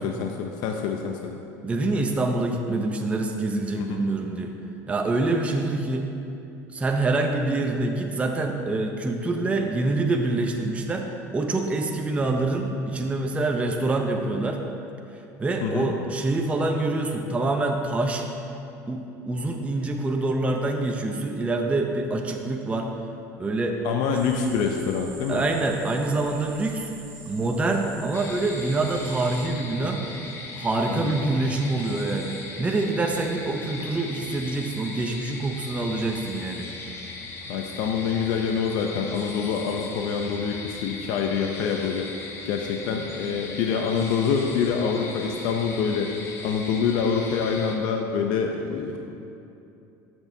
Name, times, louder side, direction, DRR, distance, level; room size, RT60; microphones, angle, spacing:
voice 1, 0.0-1.4 3.7-4.0 15.6-15.9 23.8-25.4 30.9-31.2 37.5-42.1 42.4-46.2 46.4-49.0, left 6 dB, 65° left, 3 dB, 0.5 m, -26 dB
voice 2, 1.6-4.5 4.9-6.0 6.7-14.6 15.4-18.3 18.9-22.9 23.4-23.8 25.3-26.9 27.3-30.0 30.6-36.7, right 2 dB, 15° right, 2 dB, 0.5 m, -26 dB
sound 1, 24.1-29.5, right 4 dB, 85° right, 1.8 m, -45 dB
sound 2, 28.1-47.8, left 3 dB, 35° left, 1.1 m, -39 dB
13.5 x 6.1 x 2.7 m, 2.8 s
supercardioid pair, 120°, 8 cm